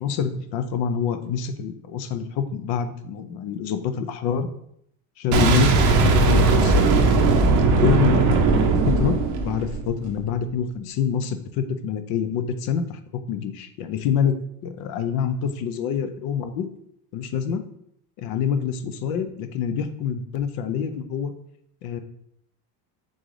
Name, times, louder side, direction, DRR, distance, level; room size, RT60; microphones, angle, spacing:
voice 1, 0.0-4.5 5.2-6.9 7.7-9.2 9.4-13.0 13.3-14.4 14.6-16.7 17.1-17.6 18.2-21.3 21.8-22.0, left 7 dB, 55° left, 9 dB, 0.5 m, -26 dB
Boom, 5.3-10.2, right 3 dB, 45° right, 0.6 m, -18 dB
3.8 x 3.2 x 3.7 m, 0.71 s
cardioid pair, 145°, 44 cm